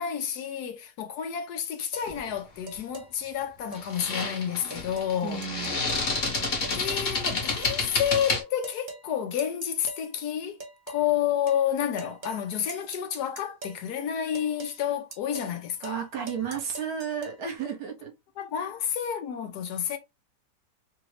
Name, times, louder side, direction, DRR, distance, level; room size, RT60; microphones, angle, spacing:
voice 1, 0.0-5.4 6.7-10.6 10.9-16.0 18.4-20.0, left 9 dB, 75° left, 1.1 m, -30 dB
sound 1, 1.9-2.1 2.7-3.1 3.7-3.9 4.2-4.3 4.7-5.1 5.4-6.1 6.6-7.1 7.6-7.8 8.1-8.3 8.6-9.1 9.4-10.0 10.6-11.0 11.5-11.6 12.0-12.4 12.7-13.8 14.3-14.8 15.1-15.6 15.8-16.0 16.3-17.4, right 3 dB, 45° right, 0.6 m, -42 dB
sound 2, 2.1-2.3 3.7-8.4, left 3 dB, 50° left, 1.4 m, -29 dB
voice 2, 5.2-5.8 15.8-18.1 18.5-18.7, right 7 dB, 65° right, 1.3 m, -33 dB
3.2 x 2.5 x 3.2 m
omnidirectional pair, 1.8 m